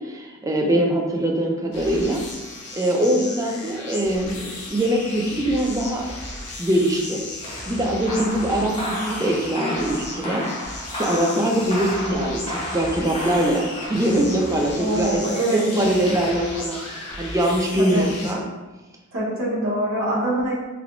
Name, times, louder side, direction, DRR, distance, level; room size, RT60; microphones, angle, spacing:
voice 1, 0.0-2.2 2.7-6.1 6.6-7.2 7.7-10.5 10.9-15.2 15.7-16.8 17.2-18.4, right 1 dB, 15° right, 1 dB, 0.4 m, -22 dB
sound 1, 1.7-18.3, left 2 dB, 85° left, 0.8 m, -35 dB
sound 2, 7.4-17.6, left 1 dB, 25° left, 0.8 m, -34 dB
voice 2, 14.8-16.1 17.8-18.1 19.1-20.5, right 1 dB, 65° right, -6 dB, 1.3 m, -24 dB
3.5 x 3.4 x 2.4 m, 1.2 s
head